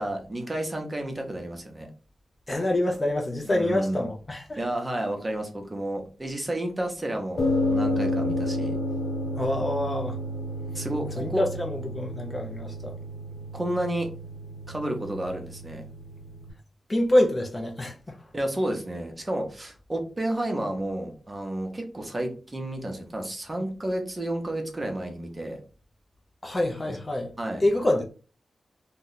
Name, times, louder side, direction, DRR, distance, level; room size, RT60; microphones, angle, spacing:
voice 1, 0.0-1.9 3.5-4.1 4.6-8.8 10.7-11.4 13.5-14.1 14.7-15.8 18.3-25.6 26.9-27.0 27.4-27.6, right 1 dB, 20° right, 0.7 m, -31 dB
voice 2, 2.5-4.6 9.4-10.2 11.2-13.0 16.9-18.2 26.4-27.3 27.6-28.0, left 1 dB, 20° left, 0.4 m, -26 dB
sound 1, 7.4-16.5, left 1 dB, 65° left, 0.8 m, -31 dB
2.8 x 2.1 x 3.8 m
wide cardioid pair, 155°, 0 cm